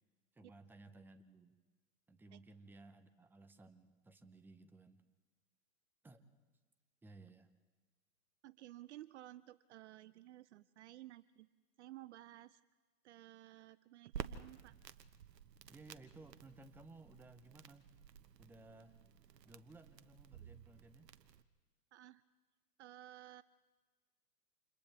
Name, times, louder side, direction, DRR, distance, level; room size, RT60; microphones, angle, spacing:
voice 1, 0.3-1.6 2.1-5.0 6.0-6.3 7.0-7.5 15.7-17.9 18.4-19.0 19.4-21.1, right 2 dB, 5° right, 9 dB, 0.7 m, -59 dB
voice 2, 8.4-11.5 11.8-12.6 13.0-14.7 21.9-22.2 22.8-23.4, right 15 dB, 45° right, 17 dB, 0.5 m, -55 dB
Crackle, 14.1-21.4, right 8 dB, 80° right, 1.2 m, -53 dB
29.5 x 28.0 x 3.5 m, 1.3 s
hypercardioid pair, 120°, 48 cm